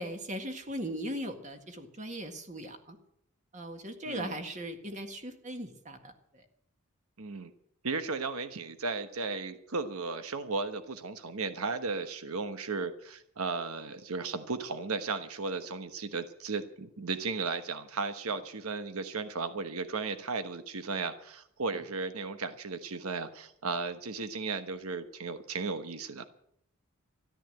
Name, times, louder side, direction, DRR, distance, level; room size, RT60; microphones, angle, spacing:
voice 1, 0.0-3.0 3.5-6.5 21.7-21.8, right 1 dB, 35° right, 6 dB, 1.8 m, -39 dB
voice 2, 4.0-4.4 7.2-7.5 7.8-26.3, right 4 dB, 80° right, 10 dB, 1.1 m, -35 dB
13.5 x 11.5 x 7.8 m, 0.71 s
head